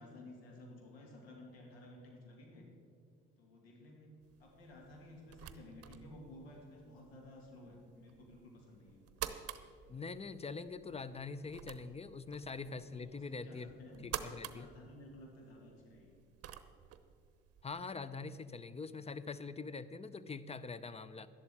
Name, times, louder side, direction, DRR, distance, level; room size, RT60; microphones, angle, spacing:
voice 1, 0.0-2.7 3.4-4.1 4.4-9.1 12.6-16.2, left 1 dB, 90° left, 0 dB, 2.2 m, -54 dB
sound 1, 4.2-17.8, right 10 dB, 55° right, 0.8 m, -50 dB
voice 2, 9.9-13.7 14.0-14.7 17.6-21.3, left 4 dB, 20° left, 15 dB, 0.6 m, -44 dB
12.0 x 11.0 x 4.8 m, 2.4 s
hypercardioid pair, 55°, 30 cm